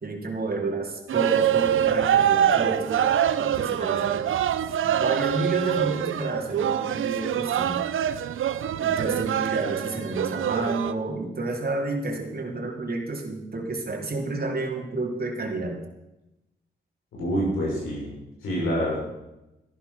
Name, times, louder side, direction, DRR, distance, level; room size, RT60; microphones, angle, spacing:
voice 1, 0.0-3.0 3.4-4.2 4.8-7.8 8.8-15.8, right 2 dB, 45° right, 1 dB, 3.3 m, -30 dB
sound 1, 1.1-10.9, right 10 dB, 75° right, 0.7 m, -24 dB
voice 2, 17.1-18.1 18.4-19.0, equal, 85° left, -4 dB, 6.1 m, -26 dB
13.0 x 12.0 x 5.9 m, 0.94 s
supercardioid pair, 40°, 21 cm